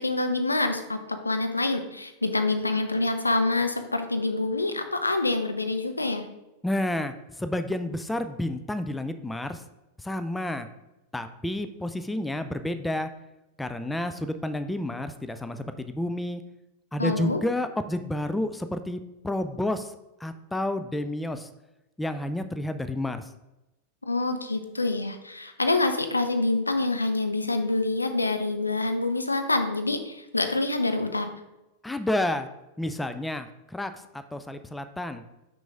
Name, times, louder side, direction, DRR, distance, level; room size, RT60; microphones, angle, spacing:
voice 1, 0.0-6.3 17.0-17.4 24.1-31.3, left 2 dB, 80° left, 7 dB, 0.6 m, -26 dB
voice 2, 6.6-9.6 10.0-10.7 11.1-13.1 13.6-16.4 16.9-19.9 20.2-21.5 22.0-23.3 31.8-32.5 32.8-35.2, left 1 dB, 5° left, 10 dB, 0.4 m, -30 dB
6.0 x 5.4 x 3.5 m, 0.98 s
figure-of-eight pair, 90°, 0 cm